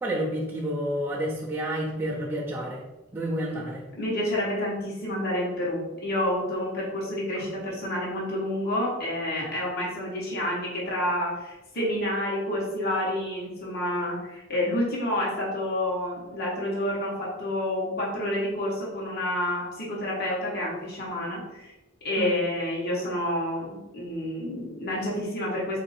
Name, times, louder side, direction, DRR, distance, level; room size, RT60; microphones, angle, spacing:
voice 1, 0.0-2.8 3.1-3.9 7.4-7.5 22.2-22.4, right 1 dB, 10° right, -6 dB, 0.5 m, -30 dB
voice 2, 4.0-21.7 22.0-25.8, left 1 dB, 50° left, -5 dB, 1.2 m, -29 dB
3.7 x 2.6 x 4.2 m, 1.0 s
head